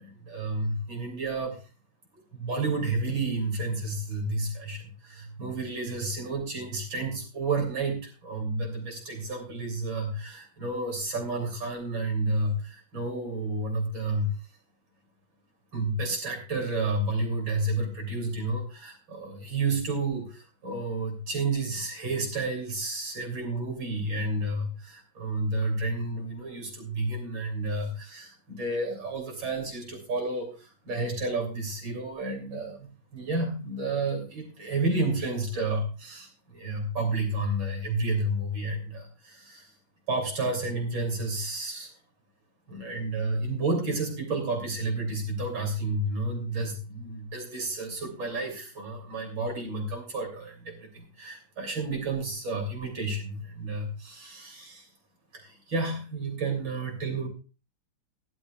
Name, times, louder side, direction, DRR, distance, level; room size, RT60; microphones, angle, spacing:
voice 1, 0.0-1.6 2.3-14.3 15.7-39.7 40.1-41.9 42.7-54.9 55.3-57.3, right 2 dB, 85° right, 2 dB, 3.8 m, -31 dB
17.5 x 11.5 x 2.4 m, 0.33 s
omnidirectional pair, 2.1 m